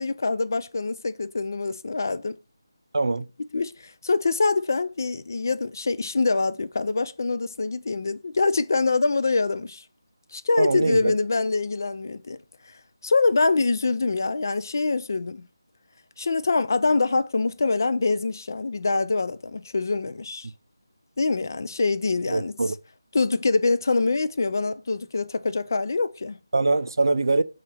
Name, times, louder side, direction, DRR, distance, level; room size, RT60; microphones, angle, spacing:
voice 1, 0.0-2.4 3.5-9.8 10.3-12.4 13.0-15.5 16.2-20.5 21.2-22.5 23.1-26.4, left 3 dB, 50° left, 0.3 m, -24 dB
voice 2, 2.9-3.3 10.6-11.1 22.3-22.7 26.5-27.4, right 3 dB, 65° right, 0.4 m, -23 dB
5.8 x 2.4 x 3.2 m
figure-of-eight pair, 170°, 2 cm